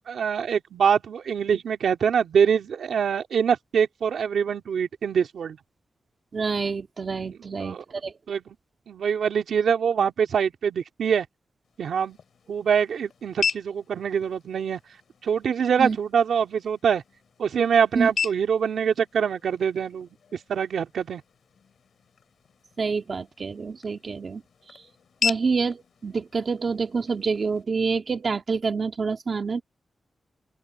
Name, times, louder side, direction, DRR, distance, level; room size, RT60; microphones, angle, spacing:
voice 1, 0.1-5.6 7.2-7.3 7.6-7.8 8.3-8.4 8.9-11.3 11.8-12.2 12.5-14.8 15.2-17.0 17.4-20.1 20.5-21.2, right 7 dB, 85° right, 2.6 m, -24 dB
voice 2, 6.3-8.1 15.8-16.0 18.0-18.1 22.8-24.4 24.7-24.8 25.2-29.6, right 5 dB, 40° right, 1.8 m, -27 dB
sound 1, 11.6-27.6, left 7 dB, 70° left, 5.9 m, -37 dB
wide cardioid pair, 175°, 0 cm